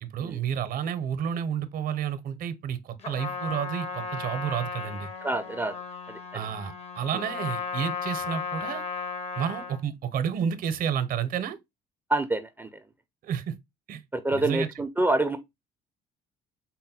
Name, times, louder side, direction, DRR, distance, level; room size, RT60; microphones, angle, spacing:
voice 1, 0.0-5.1 6.3-8.8 9.4-11.6 13.2-13.5 13.9-14.0 14.3-14.7, right 8 dB, 55° right, 0.6 m, -30 dB
Trumpet, 3.0-9.8, left 5 dB, 40° left, 0.7 m, -35 dB
voice 2, 5.2-5.7 6.1-6.5 7.1-7.2 12.1-12.8 14.1-15.4, right 2 dB, 10° right, 0.4 m, -27 dB
3.9 x 2.1 x 4.1 m
cardioid pair, 110°, 17 cm